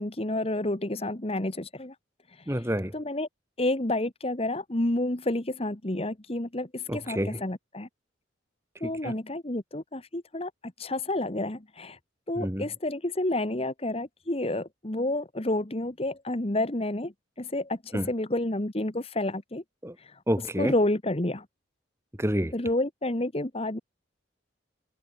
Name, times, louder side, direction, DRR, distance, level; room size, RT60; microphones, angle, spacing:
voice 1, 0.0-1.9 2.9-3.3 3.6-7.9 8.8-12.0 12.3-19.6 20.0-20.2 20.6-21.4 22.5-23.8, left 1 dB, 30° left, 1.5 m, -30 dB
voice 2, 2.5-2.9 6.9-7.4 8.8-9.2 12.4-12.7 17.9-18.1 19.8-19.9 20.3-20.7 22.2-22.6, equal, 15° right, 3.4 m, -29 dB
head